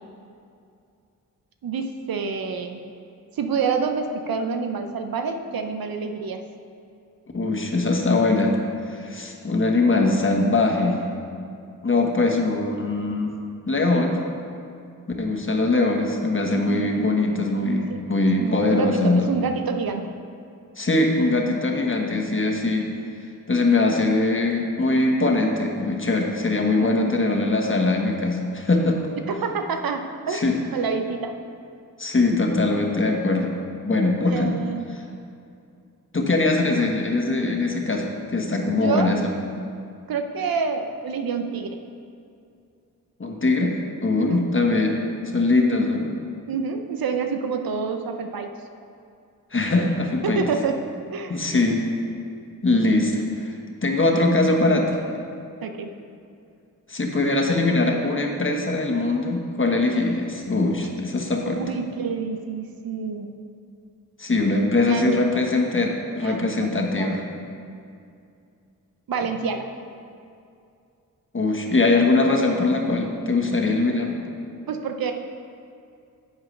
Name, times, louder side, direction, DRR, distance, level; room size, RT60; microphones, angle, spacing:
voice 1, 1.6-2.8 3.3-6.4 16.5-17.1 17.9-20.1 26.7-27.1 29.3-30.4 30.7-31.4 34.2-34.9 38.8-39.2 40.1-41.8 44.2-44.4 46.5-48.5 50.2-50.9 51.1-51.5 55.6-55.9 61.5-63.4 64.8-65.2 66.2-67.1 69.1-69.7 74.7-75.1, right 5 dB, 75° right, 6 dB, 0.7 m, -28 dB
voice 2, 7.3-8.5 8.9-11.0 11.8-13.3 13.7-14.2 15.2-19.3 20.8-22.9 23.5-29.0 30.3-30.6 32.0-33.5 33.8-34.5 36.1-39.2 43.2-45.0 45.3-46.1 49.5-50.4 51.3-51.9 52.6-53.5 53.8-55.0 56.9-61.6 64.2-67.2 71.3-74.2, left 2 dB, 35° left, 1 dB, 1.3 m, -22 dB
10.5 x 7.3 x 3.3 m, 2.5 s
cardioid pair, 45°, 35 cm